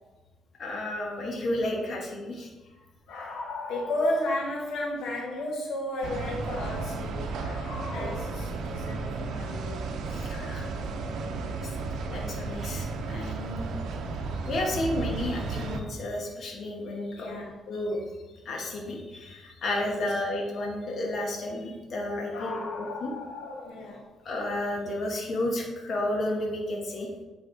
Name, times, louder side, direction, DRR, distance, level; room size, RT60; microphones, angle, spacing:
voice 1, 0.6-2.5 7.9-8.1 8.5-8.6 10.1-10.7 11.6-11.7 12.1-13.6 14.5-17.4 17.7-18.0 18.4-23.1 24.2-27.1, left 1 dB, 55° left, -1 dB, 1.3 m, -32 dB
voice 2, 3.1-9.8 11.7-11.9 17.2-17.5 22.3-24.0, left 1 dB, 75° left, -2 dB, 1.3 m, -33 dB
sound 1, 6.0-15.8, right 3 dB, 75° right, 0.6 m, -33 dB
8.3 x 3.4 x 4.0 m, 1.1 s
cardioid pair, 90°, 0 cm